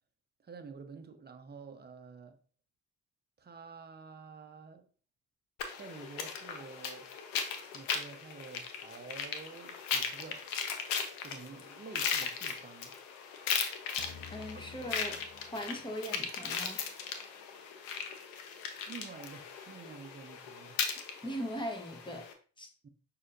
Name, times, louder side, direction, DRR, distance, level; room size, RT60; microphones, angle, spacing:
voice 1, 0.4-2.4 3.4-4.9 5.8-7.1 7.7-10.5 11.2-13.0 14.4-14.7 18.9-20.8 22.8-22.9, right 5 dB, 30° right, 0.7 m, -49 dB
sound 1, 5.6-22.3, left 6 dB, 85° left, 0.7 m, -38 dB
sound 2, 14.0-16.9, left 6 dB, 40° left, 0.5 m, -52 dB
voice 2, 14.3-16.8 21.2-22.3 22.6-22.7, equal, 15° left, 1.1 m, -40 dB
6.1 x 2.8 x 2.5 m
supercardioid pair, 65°, 36 cm